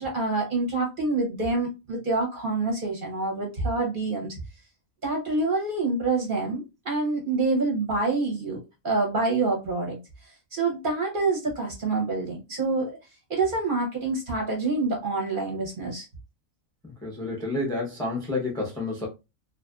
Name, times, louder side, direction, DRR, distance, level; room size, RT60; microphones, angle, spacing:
voice 1, 0.0-4.4 5.0-13.0 13.3-16.1, right 3 dB, 45° right, 0.8 m, -27 dB
voice 2, 17.0-19.1, left 2 dB, 5° left, 0.5 m, -29 dB
2.5 x 2.4 x 2.3 m
omnidirectional pair, 1.4 m